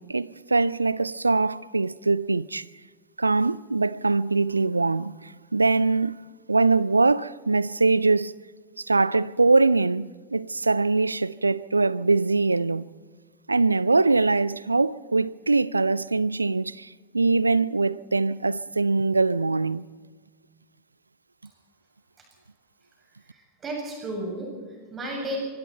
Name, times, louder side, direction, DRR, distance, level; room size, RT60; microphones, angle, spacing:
voice 1, 0.0-2.6 3.2-6.2 6.5-8.3 8.8-12.9 13.5-19.8, right 3 dB, 80° right, 0.5 m, -23 dB
voice 2, 23.3-25.4, right 1 dB, 20° right, 7.2 m, -34 dB
25.5 x 25.5 x 4.4 m
figure-of-eight pair, 90°, 0 cm